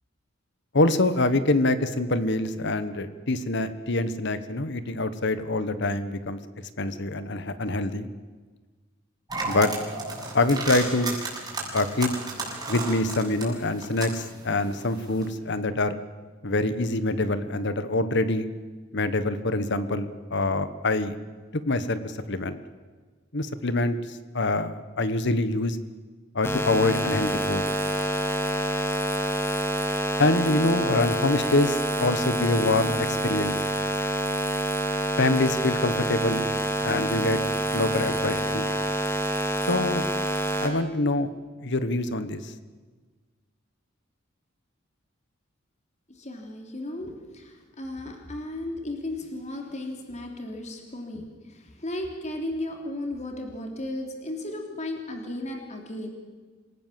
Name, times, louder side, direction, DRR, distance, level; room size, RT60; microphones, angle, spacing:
voice 1, 0.7-6.4 6.8-8.1 9.5-9.7 10.3-11.1 11.7-12.1 12.7-16.0 16.4-18.5 18.9-21.1 21.6-22.6 23.3-24.0 24.3-25.8 26.3-27.7 30.2-33.6 35.2-36.5 36.8-37.4 37.7-38.7 39.7-40.1 40.6-41.3 41.6-42.5, left 2 dB, 60° left, 12 dB, 1.3 m, -25 dB
sound 1, 9.3-15.3, right 3 dB, 20° right, 7.3 m, -34 dB
sound 2, 26.4-40.7, right 1 dB, 10° left, 2.5 m, -27 dB
voice 2, 46.1-56.1, left 1 dB, 35° left, 3 dB, 3.3 m, -35 dB
27.0 x 17.5 x 7.6 m, 1.4 s
head